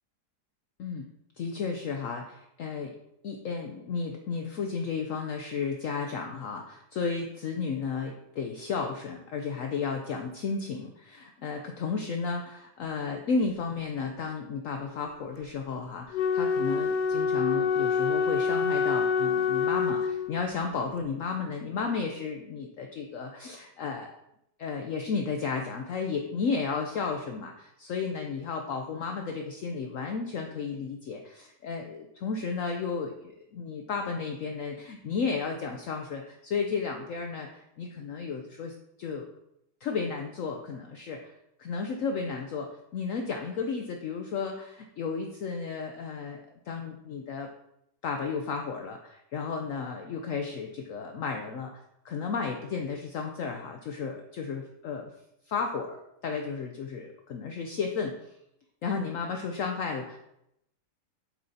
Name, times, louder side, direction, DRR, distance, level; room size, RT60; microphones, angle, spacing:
voice 1, 1.4-2.9 3.2-24.1 24.6-38.7 39.0-39.3 39.8-41.3 41.6-47.5 48.0-55.1 55.5-58.3 58.8-60.2, left 5 dB, 65° left, 3 dB, 0.9 m, -33 dB
Wind instrument woodwind instrument, 16.1-20.5, left 6 dB, 85° left, 1.2 m, -26 dB
8.7 x 7.4 x 2.8 m, 0.81 s
omnidirectional pair, 1.8 m